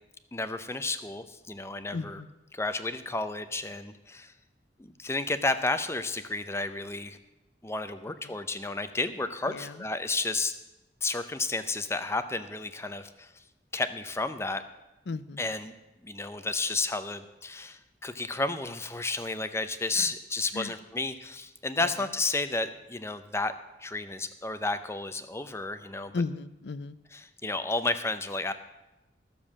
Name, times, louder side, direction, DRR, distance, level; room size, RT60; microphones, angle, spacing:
voice 1, 0.3-2.2 2.5-4.3 4.8-7.2 7.6-10.5 11.0-13.3 13.7-14.6 15.4-15.7 16.0-23.5 23.8-26.1 27.1-28.5, left 3 dB, 15° left, 11 dB, 0.6 m, -32 dB
voice 2, 1.9-2.3 8.2-8.3 9.5-9.9 15.1-15.4 20.0-20.1 20.5-20.7 21.8-22.0 26.1-27.0, left 4 dB, 65° left, 16 dB, 0.5 m, -35 dB
13.5 x 7.0 x 7.3 m, 0.97 s
head